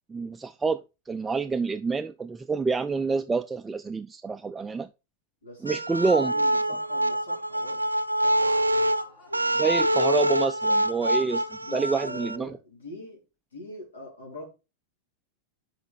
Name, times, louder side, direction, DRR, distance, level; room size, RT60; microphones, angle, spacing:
voice 1, 0.1-4.9 5.6-6.3 9.6-12.6, right 4 dB, 15° right, 0.4 m, -28 dB
voice 2, 5.4-8.4 11.7-13.2 13.5-14.5, left 2 dB, 70° left, 3.6 m, -42 dB
sound 1, 5.7-12.4, right 1 dB, 85° right, 0.4 m, -25 dB
Laughter, 8.2-10.6, left 3 dB, 40° left, 2.3 m, -52 dB
6.0 x 5.3 x 5.6 m
figure-of-eight pair, 90°, 0 cm